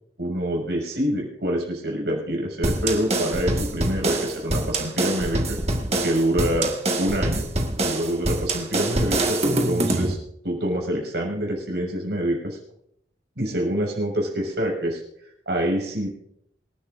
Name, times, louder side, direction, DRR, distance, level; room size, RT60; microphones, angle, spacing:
voice 1, 0.2-5.6 6.0-6.7 7.0-7.4 7.8-10.2 10.4-12.6 13.4-15.0 15.5-16.1, equal, 70° right, -1 dB, 6.3 m, -26 dB
sound 1, 2.6-10.1, right 1 dB, 40° right, 1.8 m, -25 dB
26.0 x 11.0 x 2.6 m, 0.73 s
head